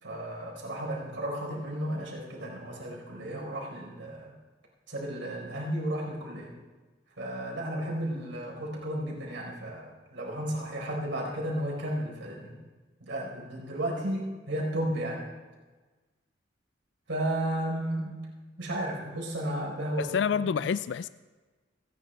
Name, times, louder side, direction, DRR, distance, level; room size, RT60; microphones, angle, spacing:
voice 1, 0.0-4.3 4.9-6.5 7.2-12.6 13.0-15.3 17.1-18.2 18.6-20.5, right 1 dB, 90° right, -2 dB, 4.5 m, -33 dB
voice 2, 20.0-21.1, left 7 dB, 65° left, 15 dB, 0.3 m, -28 dB
29.5 x 10.0 x 3.4 m, 1.3 s
head